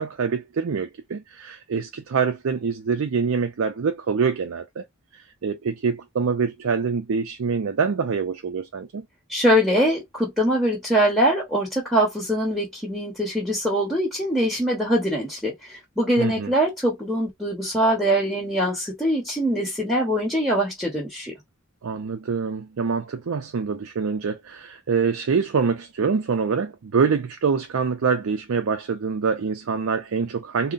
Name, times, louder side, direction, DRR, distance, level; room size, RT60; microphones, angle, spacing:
voice 1, 0.0-4.8 5.1-9.1 16.2-16.5 21.8-30.7, right 5 dB, 70° right, 0.4 m, -25 dB
voice 2, 9.3-21.3, equal, ahead, 1.2 m, -23 dB
3.7 x 2.1 x 2.5 m
head